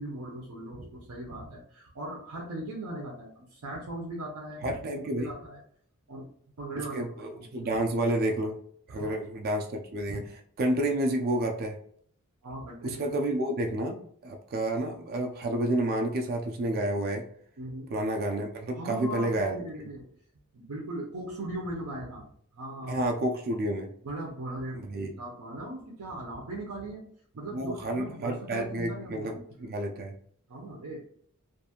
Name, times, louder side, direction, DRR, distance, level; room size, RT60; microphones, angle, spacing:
voice 1, 0.0-5.6 6.1-6.3 6.6-7.8 8.9-9.1 10.1-10.3 12.4-13.1 17.6-17.9 18.8-20.1 20.5-22.3 22.5-23.0 24.0-27.1 27.3-29.4 30.5-31.0, right 1 dB, 90° right, -2 dB, 0.6 m, -39 dB
voice 2, 4.6-5.3 6.8-8.6 8.9-10.2 10.6-11.8 12.8-17.3 17.9-19.6 22.9-23.9 24.8-25.1 27.5-30.2, right 1 dB, 45° right, 3 dB, 0.3 m, -30 dB
2.5 x 2.3 x 2.8 m, 0.62 s
head